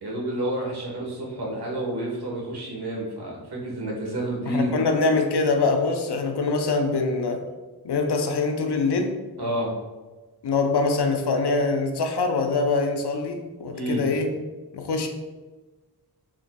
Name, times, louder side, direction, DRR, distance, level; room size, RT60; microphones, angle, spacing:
voice 1, 0.0-4.7 9.4-9.7 13.7-14.0, right 1 dB, 70° right, -3 dB, 1.4 m, -29 dB
voice 2, 4.5-7.4 7.8-9.1 10.4-14.3 14.7-15.1, left 3 dB, 75° left, 5 dB, 0.7 m, -24 dB
4.9 x 4.0 x 2.3 m, 1.2 s
cardioid pair, 40°, 40 cm